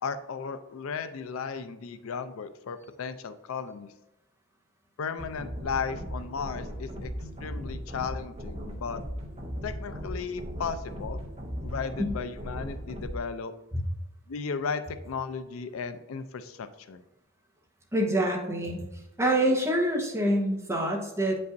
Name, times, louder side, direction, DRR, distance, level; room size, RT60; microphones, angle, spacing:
voice 1, 0.0-3.9 5.0-7.1 7.4-9.0 9.6-11.2 11.6-13.5 14.3-17.0, left 5 dB, 80° left, 12 dB, 0.4 m, -35 dB
sound 1, 5.2-13.2, equal, 30° right, 0.9 m, -37 dB
voice 2, 17.9-18.8 19.2-21.4, right 1 dB, 15° right, -1 dB, 1.1 m, -26 dB
7.9 x 5.4 x 2.6 m, 0.95 s
head